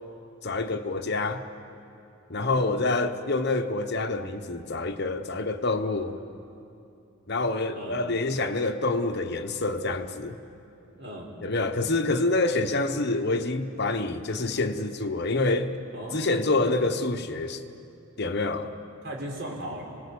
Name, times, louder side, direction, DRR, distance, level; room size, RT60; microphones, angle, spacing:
voice 1, 0.4-1.4 2.3-6.2 7.3-10.4 11.4-15.7 16.1-17.6 18.2-18.7, left 2 dB, 50° left, 1.1 m, -27 dB
voice 2, 10.9-11.3 15.9-16.7 19.0-19.8, right 1 dB, 50° right, 5.2 m, -38 dB
27.5 x 19.0 x 8.6 m
head